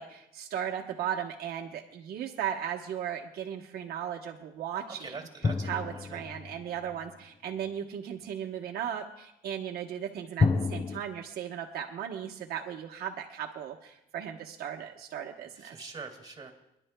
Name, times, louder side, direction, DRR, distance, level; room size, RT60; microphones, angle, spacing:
voice 1, 0.0-5.2 5.6-15.8, right 9 dB, 65° right, 1 dB, 1.0 m, -36 dB
voice 2, 4.9-6.2 15.6-16.5, right 4 dB, 25° right, 2 dB, 2.6 m, -44 dB
sound 1, 5.4-7.1 10.4-11.0, left 4 dB, 20° left, 0.5 m, -29 dB
28.0 x 11.0 x 2.2 m, 0.85 s
cardioid pair, 110°, 17 cm